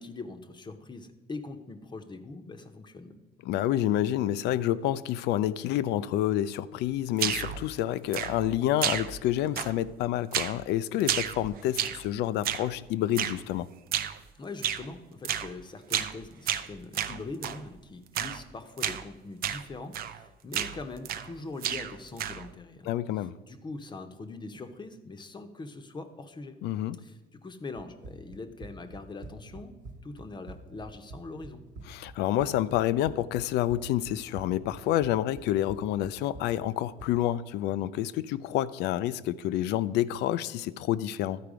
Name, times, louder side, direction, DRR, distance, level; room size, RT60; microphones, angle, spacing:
voice 1, 0.0-3.2 14.3-26.6 27.0-29.7 30.0-31.6, left 3 dB, 25° left, 0.8 m, -42 dB
voice 2, 3.5-13.7 22.8-23.3 26.6-27.0 31.9-41.4, left 12 dB, 85° left, 0.4 m, -28 dB
sound 1, 7.2-7.6 8.1-8.5 8.8-9.3 9.6-9.9 10.3-10.6 11.0-12.1 12.4-12.7 13.2-13.4 13.9-14.2 14.6-14.9 15.2-15.5 15.9-16.2 16.5-17.6 18.1-18.4 18.8-19.0 19.4-19.6 19.9-20.2 20.5-21.3 21.6-22.5, right 10 dB, 65° right, 0.5 m, -31 dB
Run, 27.8-37.2, right 2 dB, 50° right, 1.0 m, -47 dB
12.0 x 4.6 x 4.9 m
cardioid pair, 110°, 17 cm